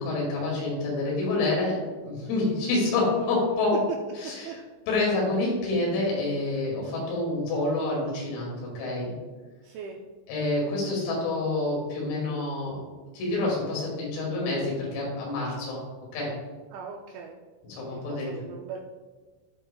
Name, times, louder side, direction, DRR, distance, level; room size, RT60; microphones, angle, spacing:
voice 1, 0.0-3.8 4.2-4.6 4.9-9.1 10.3-12.8 13.1-15.8 16.1-16.3 17.7-18.3, left 2 dB, 80° left, -3 dB, 5.2 m, -27 dB
voice 2, 4.2-4.6 9.6-10.0 16.7-17.4 17.9-18.8, right 6 dB, 80° right, 0 dB, 2.7 m, -40 dB
15.5 x 5.5 x 2.3 m, 1.4 s
omnidirectional pair, 6.0 m